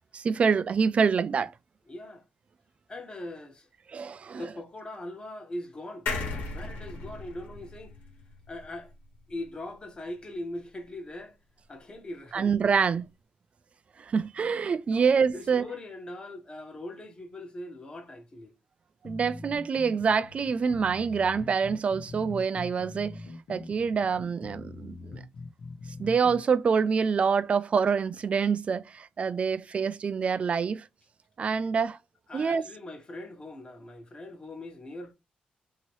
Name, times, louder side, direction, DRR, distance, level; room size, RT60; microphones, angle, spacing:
voice 1, 0.1-1.5 3.9-4.4 12.3-13.1 14.0-15.6 19.0-23.2 23.5-25.2 26.0-30.8 31.4-32.0 32.3-32.6, right 6 dB, 45° right, 0.4 m, -26 dB
voice 2, 1.9-2.2 2.9-3.7 4.3-6.1 6.5-8.0 8.5-8.9 9.3-11.4 11.7-12.5 14.9-18.5 32.3-35.1, left 1 dB, 30° left, 1.1 m, -41 dB
sound 1, 6.1-9.5 9.9-10.0 10.2-10.3, left 3 dB, 85° left, 1.3 m, -37 dB
sound 2, 19.0-26.4, left 3 dB, 65° left, 0.9 m, -43 dB
2.9 x 2.8 x 2.9 m
cardioid pair, 90°, 3 cm